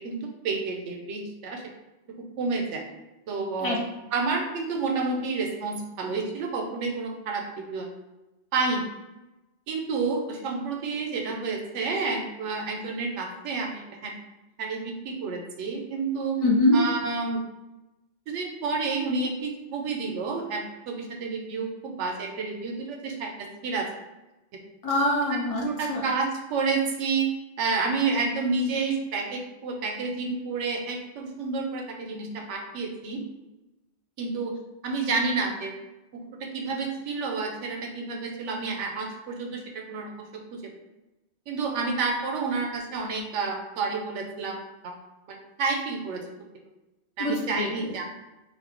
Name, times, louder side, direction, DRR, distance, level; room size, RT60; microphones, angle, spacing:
voice 1, 0.4-1.6 2.4-2.8 3.3-3.8 4.1-7.9 8.5-8.9 9.7-14.1 14.6-16.4 16.7-17.4 18.3-23.3 23.6-23.9 25.6-27.3 27.6-33.2 34.2-34.5 34.8-35.7 36.4-40.1 40.5-40.6 41.5-44.9 45.3-46.2 47.2-48.0, right 4 dB, 85° right, 2 dB, 0.9 m, -29 dB
voice 2, 16.4-16.8 24.8-26.0 47.2-47.9, left 1 dB, 55° left, -1 dB, 0.4 m, -24 dB
2.5 x 2.1 x 3.6 m, 1.0 s
omnidirectional pair, 1.2 m